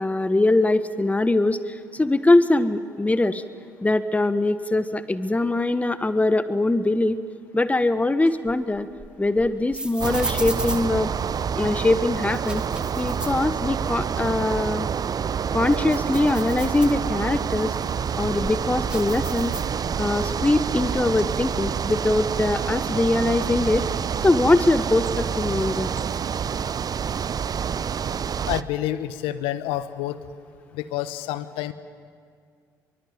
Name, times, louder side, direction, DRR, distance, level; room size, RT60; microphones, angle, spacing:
voice 1, 0.0-3.4 3.8-7.2 7.5-8.9 9.2-11.1 11.6-12.6 12.9-14.9 15.5-17.7 18.1-19.5 20.0-23.8 24.2-25.9, left 2 dB, 15° left, 13 dB, 1.2 m, -22 dB
sound 1, 8.2-11.6 12.2-14.1 14.4-14.5 15.0-17.4 18.0-20.1 20.4-21.2, right 1 dB, 10° right, 2.2 m, -37 dB
sound 2, 10.0-28.6, right 7 dB, 40° right, 0.6 m, -27 dB
voice 2, 28.5-30.2 30.7-31.7, left 13 dB, 70° left, 13 dB, 1.1 m, -28 dB
25.0 x 23.5 x 7.4 m, 2.1 s
hypercardioid pair, 50°, 10 cm